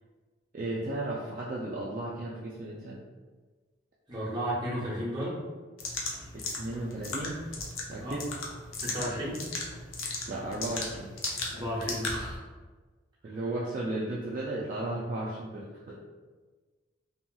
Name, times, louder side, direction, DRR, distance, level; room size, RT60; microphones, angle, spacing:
voice 1, 0.5-3.0 6.3-7.4 7.9-8.2 10.3-11.1 13.2-16.0, right 2 dB, 40° right, -5 dB, 0.3 m, -34 dB
voice 2, 4.1-5.4 8.0-8.2 8.8-9.4 11.5-12.4 13.2-13.4, equal, 20° right, -7 dB, 0.8 m, -33 dB
sound 1, 5.8-12.4, left 3 dB, 85° left, 0.5 m, -37 dB
2.8 x 2.7 x 2.2 m, 1.4 s
head